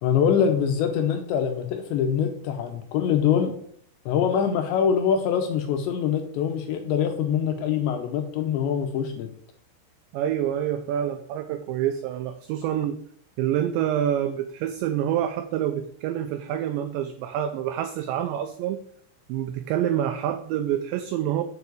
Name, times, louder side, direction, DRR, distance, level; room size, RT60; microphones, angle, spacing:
voice 1, 0.0-3.5 4.1-9.3, left 8 dB, 75° left, 5 dB, 2.8 m, -24 dB
voice 2, 10.1-13.0 13.4-18.8 19.3-21.4, right 10 dB, 85° right, 8 dB, 2.5 m, -27 dB
7.1 x 6.9 x 8.1 m, 0.64 s
omnidirectional pair, 5.9 m